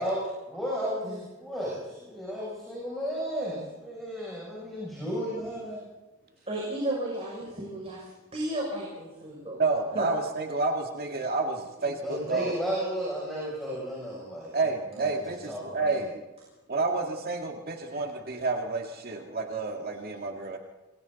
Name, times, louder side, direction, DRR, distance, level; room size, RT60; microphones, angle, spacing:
voice 1, 0.0-5.9 12.0-14.5 14.9-16.1, equal, ahead, -5 dB, 7.5 m, -34 dB
voice 2, 6.5-9.6 9.9-10.1, right 1 dB, 30° right, -3 dB, 6.7 m, -33 dB
voice 3, 9.6-12.6 14.5-16.2 16.7-20.6, right 3 dB, 50° right, 2 dB, 2.2 m, -30 dB
27.5 x 22.5 x 4.2 m, 1.1 s
head